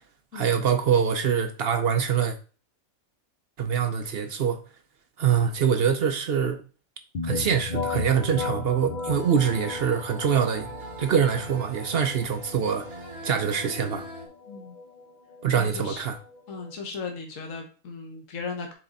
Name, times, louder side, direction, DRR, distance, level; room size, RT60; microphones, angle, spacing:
voice 1, 0.3-2.3 3.6-4.6 5.2-6.6 7.2-10.7 11.0-14.1 15.4-16.2, right 7 dB, 55° right, 0.8 m, -24 dB
sound 1, 7.1-16.7, left 4 dB, 45° left, 0.7 m, -36 dB
sound 2, 9.1-14.3, right 2 dB, 90° right, 2.1 m, -41 dB
voice 2, 15.5-16.0 16.5-18.7, left 4 dB, 60° left, 1.6 m, -37 dB
7.5 x 3.7 x 3.9 m
omnidirectional pair, 1.5 m